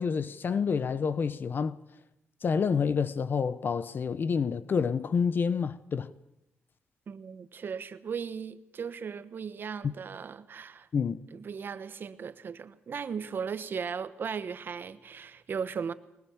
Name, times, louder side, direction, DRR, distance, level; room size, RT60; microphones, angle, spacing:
voice 1, 0.0-1.8 2.4-6.1 9.8-9.9 10.9-11.2, left 6 dB, 50° left, 0.8 m, -28 dB
voice 2, 7.1-10.9 11.3-15.9, right 6 dB, 50° right, 1.2 m, -37 dB
22.0 x 20.5 x 7.2 m
cardioid pair, 90°, 4 cm